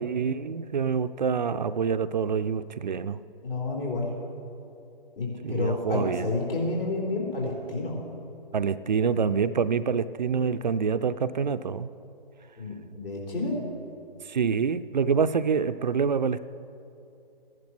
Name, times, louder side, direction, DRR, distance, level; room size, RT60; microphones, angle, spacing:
voice 1, 0.0-3.2 5.4-6.3 8.5-11.9 14.2-16.4, right 6 dB, 50° right, 12 dB, 0.5 m, -26 dB
voice 2, 3.4-4.1 5.2-8.0 12.6-13.6, left 3 dB, 70° left, -2 dB, 4.2 m, -30 dB
16.0 x 10.5 x 6.0 m, 2.7 s
figure-of-eight pair, 145°, 29 cm